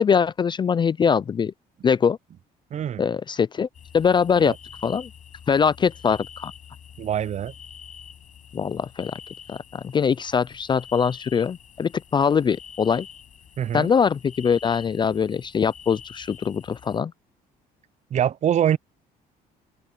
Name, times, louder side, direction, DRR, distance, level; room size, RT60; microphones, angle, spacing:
voice 1, 0.0-1.5 1.8-2.2 3.0-3.7 3.9-4.5 4.8-5.1 5.5-6.5 8.5-9.1 9.5-13.1 13.7-17.1, left 6 dB, 25° left, 0.4 m, -22 dB
voice 2, 2.7-3.1 4.4-4.5 7.0-7.5 13.6-13.9 18.1-18.8, right 10 dB, 45° right, 0.6 m, -24 dB
sound 1, 3.7-17.0, left 8 dB, 50° left, 7.8 m, -46 dB
open air
cardioid pair, 110°, 17 cm